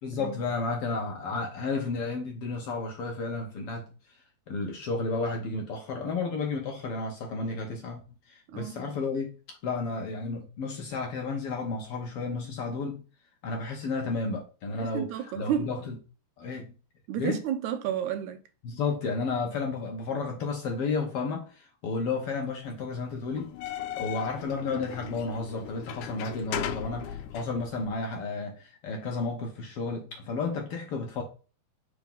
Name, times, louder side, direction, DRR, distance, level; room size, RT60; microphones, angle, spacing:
voice 1, 0.0-3.9 4.5-8.0 8.3-9.3 9.6-13.0 13.4-15.1 15.4-16.0 16.4-16.7 17.2-17.4 18.6-31.2, left 3 dB, 65° left, 1.6 m, -32 dB
voice 2, 14.8-15.7 17.1-18.4, right 9 dB, 80° right, 2.0 m, -31 dB
sound 1, 23.4-27.9, left 10 dB, 85° left, 2.1 m, -37 dB
4.9 x 3.6 x 5.4 m
omnidirectional pair, 3.4 m